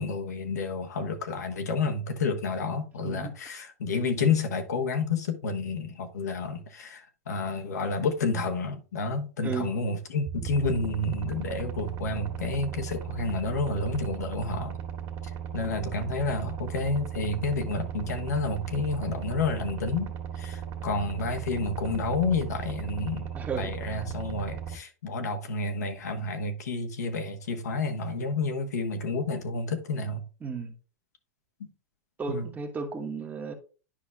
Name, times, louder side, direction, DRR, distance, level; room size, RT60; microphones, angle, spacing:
voice 1, 0.0-14.8 15.5-23.3 23.6-30.2 31.6-31.7 32.3-32.4, left 3 dB, 80° left, 1.2 m, -30 dB
voice 2, 9.4-9.7 23.3-23.7 30.4-30.7 32.2-33.5, right 4 dB, 20° right, 1.2 m, -34 dB
sound 1, 10.3-24.8, right 8 dB, 40° right, 1.8 m, -37 dB
10.0 x 5.4 x 2.4 m
hypercardioid pair, 110°, 9 cm